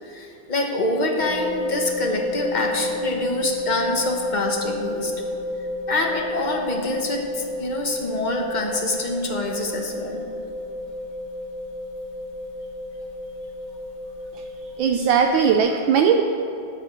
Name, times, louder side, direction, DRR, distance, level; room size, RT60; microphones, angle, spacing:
voice 1, 0.0-5.1 5.9-10.2, left 2 dB, 30° left, 1 dB, 0.9 m, -26 dB
sound 1, 1.2-15.5, left 2 dB, 70° left, 3.0 m, -31 dB
voice 2, 14.8-16.2, right 7 dB, 75° right, 4 dB, 1.3 m, -18 dB
9.6 x 7.6 x 6.9 m, 2.7 s
omnidirectional pair, 2.3 m